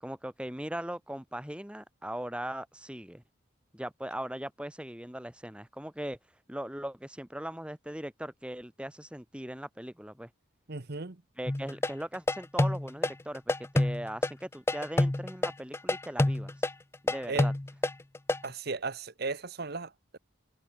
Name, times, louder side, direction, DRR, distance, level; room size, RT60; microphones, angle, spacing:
voice 1, 0.0-3.2 3.7-6.2 6.5-10.3 11.4-16.5 17.0-17.5, right 1 dB, 5° right, 1.6 m, -39 dB
voice 2, 10.7-11.2 17.3-17.5 18.4-20.2, right 3 dB, 50° right, 1.1 m, -36 dB
sound 1, 11.5-18.5, left 1 dB, 15° left, 0.4 m, -27 dB
head